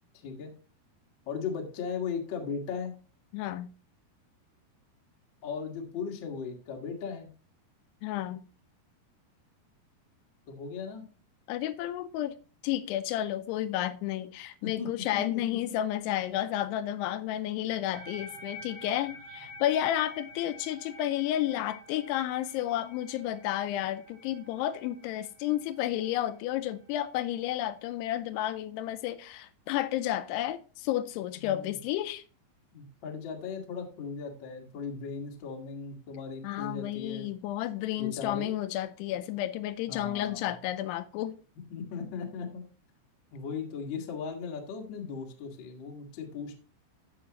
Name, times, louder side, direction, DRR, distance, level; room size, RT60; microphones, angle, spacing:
voice 1, 1.2-2.9 5.4-7.3 10.5-11.0 14.6-15.8 31.4-31.7 32.7-37.3 38.0-38.5 39.9-40.5 41.7-42.6 43.3-46.5, left 5 dB, 65° left, 1.1 m, -37 dB
voice 2, 3.3-3.7 8.0-8.5 11.5-12.4 12.6-32.2 36.4-41.3, left 13 dB, 85° left, 2.6 m, -31 dB
sound 1, 17.9-28.5, left 1 dB, 55° right, 3.3 m, -49 dB
14.5 x 4.9 x 2.9 m
omnidirectional pair, 4.8 m